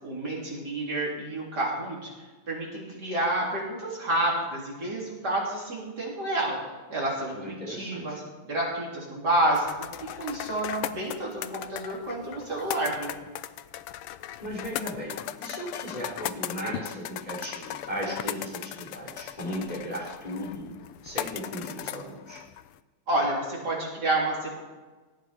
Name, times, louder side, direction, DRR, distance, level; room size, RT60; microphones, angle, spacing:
voice 1, 0.0-2.1 2.5-6.6 6.9-13.2 23.1-24.6, right 1 dB, 50° right, -4 dB, 4.1 m, -29 dB
voice 2, 7.3-8.2 14.4-20.7 21.0-22.4, equal, 20° left, -3 dB, 4.0 m, -36 dB
sound 1, 9.6-22.8, left 12 dB, 90° left, 1.6 m, -38 dB
18.5 x 14.0 x 4.5 m, 1.2 s
omnidirectional pair, 2.4 m